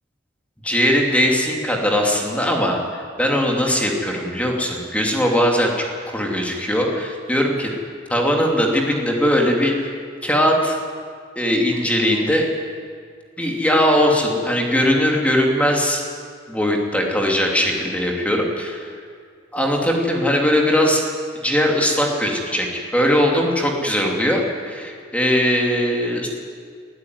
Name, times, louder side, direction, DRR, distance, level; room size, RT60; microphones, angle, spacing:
voice 1, 0.6-2.8 3.2-7.7 8.1-9.9 10.2-10.7 11.4-12.5 13.4-16.0 16.5-18.9 19.5-21.0 21.4-26.3, equal, 5° left, 0 dB, 2.8 m, -20 dB
22.0 x 14.0 x 9.6 m, 2.1 s
head